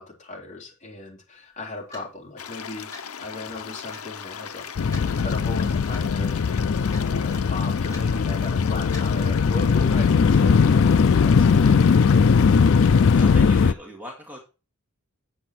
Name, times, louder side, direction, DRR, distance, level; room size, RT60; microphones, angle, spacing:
voice 1, 0.0-2.9 3.2-11.9, left 2 dB, 35° left, -2 dB, 3.7 m, -37 dB
Clock, 1.9-2.1 2.9-3.1 3.9-4.1 4.9-5.1 5.9-6.0 6.9-7.1 7.9-8.1 8.9-9.1, left 2 dB, 15° left, 4.1 m, -42 dB
sound 1, 2.4-13.4, left 7 dB, 80° left, 0.7 m, -38 dB
sound 2, 4.8-13.7, left 5 dB, 60° left, 0.4 m, -19 dB
voice 2, 13.1-14.4, equal, 10° right, -2 dB, 2.3 m, -40 dB
9.2 x 8.1 x 4.3 m, 0.33 s
head